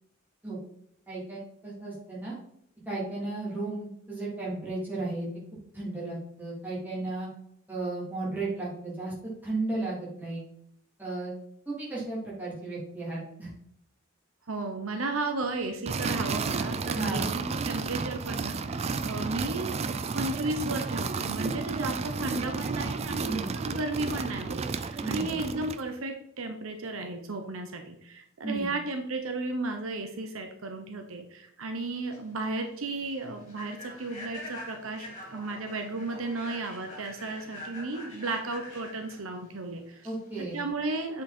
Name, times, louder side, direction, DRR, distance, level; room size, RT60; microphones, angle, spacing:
voice 1, 1.1-2.3 2.8-5.3 5.7-7.3 7.7-9.1 9.4-10.4 11.0-11.3 11.6-13.5 16.9-17.3 23.3-23.5 25.0-25.3 28.4-28.7 40.0-40.6, right 2 dB, 10° right, -7 dB, 3.4 m, -34 dB
voice 2, 14.5-19.8 20.1-40.1 40.5-41.2, right 2 dB, 75° right, 5 dB, 0.9 m, -34 dB
sound 1, 15.9-25.9, right 4 dB, 30° right, 0.4 m, -32 dB
Human voice / Train, 31.8-40.7, left 1 dB, 30° left, 3.5 m, -45 dB
8.2 x 5.0 x 4.3 m, 0.72 s
head